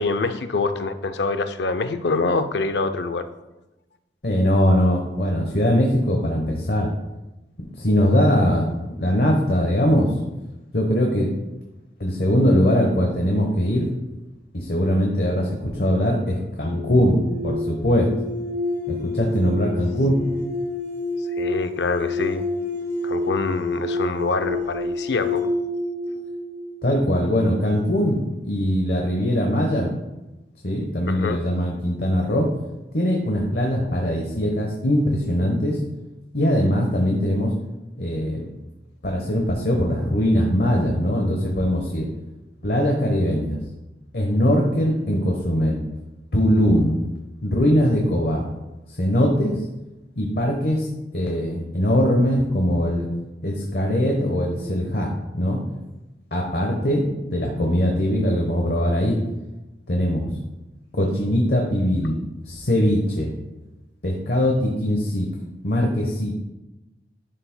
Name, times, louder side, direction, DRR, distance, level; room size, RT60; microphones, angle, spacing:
voice 1, 0.0-3.3 21.4-22.5 23.0-25.5 31.1-31.4, left 3 dB, 80° left, 10 dB, 0.5 m, -25 dB
voice 2, 4.2-6.9 7.8-8.7 9.0-10.1 10.7-11.3 12.0-13.9 14.5-18.1 18.9-20.2 26.8-28.2 28.4-29.9 30.6-32.5 32.9-35.8 36.3-37.5 38.0-38.5 39.0-42.1 42.6-43.6 44.1-45.8 46.3-46.9 47.4-48.4 49.0-49.6 50.2-50.9 51.1-53.1 53.4-55.6 56.3-57.0 57.3-59.2 59.9-60.3 60.9-62.2 62.5-63.3 64.0-65.3 65.6-66.3, equal, 60° left, 0 dB, 1.0 m, -21 dB
sound 1, 16.6-27.6, left 2 dB, 15° left, 1.3 m, -29 dB
11.0 x 7.0 x 2.2 m, 1.0 s
head